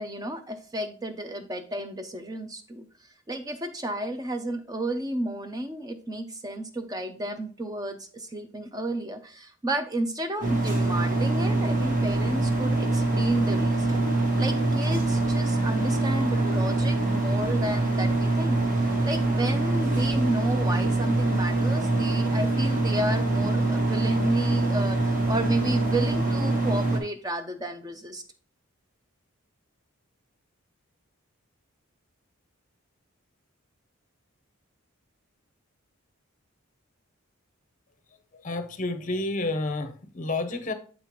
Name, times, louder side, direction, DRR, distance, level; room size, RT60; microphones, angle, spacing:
voice 1, 0.0-2.9 3.3-14.0 14.4-28.2, right 1 dB, 15° right, 0.6 m, -32 dB
sound 1, 10.4-27.0, right 2 dB, 35° right, 1.3 m, -24 dB
voice 2, 38.3-40.7, left 2 dB, 35° left, 0.7 m, -30 dB
7.5 x 5.5 x 3.1 m
head